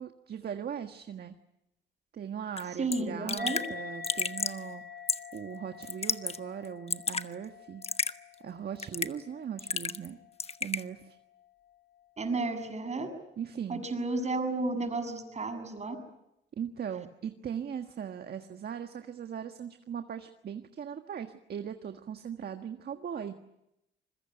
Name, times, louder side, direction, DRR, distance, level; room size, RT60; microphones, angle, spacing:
voice 1, 0.0-1.3 2.1-4.8 5.3-7.8 8.4-10.2 10.6-11.2 13.4-13.8 16.6-23.3, right 8 dB, 55° right, 6 dB, 1.7 m, -39 dB
Raindrop / Drip, 2.6-2.7 2.9-3.0 3.3-3.7 4.0-4.6 5.1-5.4 5.8-6.4 6.7-7.3 7.8-8.1 8.8-9.2 9.6-10.1 10.4-10.8, left 5 dB, 30° left, 1.1 m, -31 dB
voice 2, 2.8-3.6 12.2-13.1 13.7-16.0, right 3 dB, 35° right, 6 dB, 7.0 m, -32 dB
sound 1, 3.4-10.3, left 5 dB, 50° left, 2.7 m, -46 dB
25.5 x 22.0 x 9.1 m, 0.85 s
cardioid pair, 90°, 20 cm